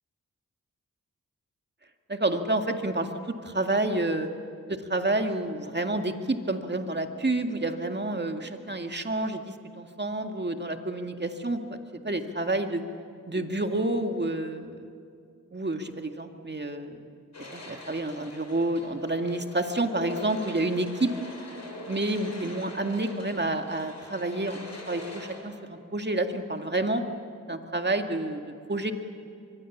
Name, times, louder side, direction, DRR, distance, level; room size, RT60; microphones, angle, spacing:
voice 1, 2.1-3.1 3.4-4.3 4.7-11.8 12.0-12.8 13.3-14.9 15.5-17.0 17.5-21.1 21.9-27.0 27.5-28.9, right 2 dB, 35° right, 5 dB, 2.1 m, -29 dB
sound 1, 17.3-25.4, left 1 dB, 55° left, 6.3 m, -43 dB
24.0 x 22.5 x 7.3 m, 2.3 s
cardioid pair, 45°, 32 cm